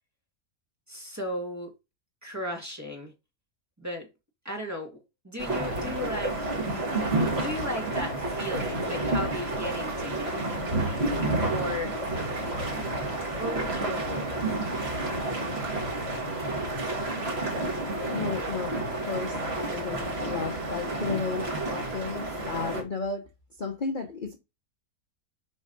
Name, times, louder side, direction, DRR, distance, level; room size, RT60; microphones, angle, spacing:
voice 1, 0.9-1.7 2.2-3.1 3.8-4.1 4.4-5.0 5.2-6.5 7.3-10.4 11.5-11.9 12.7-12.9 13.4-14.4, left 1 dB, 10° right, 1.8 m, -35 dB
sound 1, 5.4-22.8, right 2 dB, 45° right, 2.2 m, -30 dB
voice 2, 18.1-23.2 23.6-24.4, left 4 dB, 40° left, 1.0 m, -34 dB
7.5 x 4.7 x 4.0 m
omnidirectional pair, 1.5 m